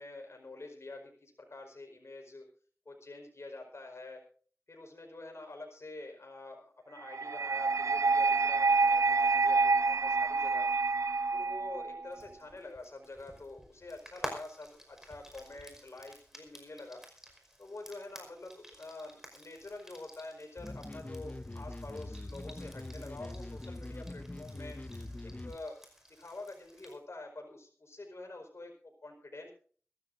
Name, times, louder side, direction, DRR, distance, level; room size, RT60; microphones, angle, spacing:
voice 1, 0.0-2.5 2.8-4.2 4.7-10.7 11.3-17.0 17.6-24.8 25.2-25.8 26.1-29.5, left 2 dB, 55° left, 1 dB, 4.9 m, -47 dB
sound 1, 7.1-12.1, right 4 dB, 70° right, 0.5 m, -28 dB
Frying (food), 12.1-27.0, equal, 10° right, 5.4 m, -51 dB
sound 2, 20.6-25.6, left 1 dB, 30° left, 1.1 m, -43 dB
23.0 x 15.0 x 2.7 m, 0.43 s
wide cardioid pair, 55°, 5 cm